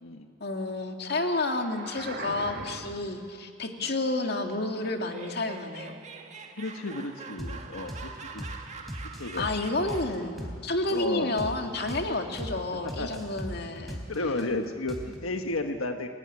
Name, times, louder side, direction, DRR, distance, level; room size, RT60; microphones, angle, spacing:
voice 1, 0.4-5.9 9.4-14.0, left 2 dB, 50° left, 4 dB, 2.2 m, -30 dB
sound 1, 1.6-3.2, right 2 dB, 50° right, 2.5 m, -40 dB
Laughter, 4.8-10.3, right 4 dB, 35° right, 1.9 m, -44 dB
voice 2, 6.6-8.5 9.0-9.5 10.9-11.3 12.8-13.4 14.1-16.1, left 2 dB, 90° left, 5 dB, 1.4 m, -33 dB
sound 2, 7.4-7.6 7.9-8.1 8.4-8.6 8.9-10.6 10.9-11.0 11.4-11.6 11.9-12.1 12.4-12.6 12.9-14.4 14.9-15.3, equal, ahead, 3.9 m, -38 dB
29.5 x 19.0 x 9.8 m, 2.2 s
head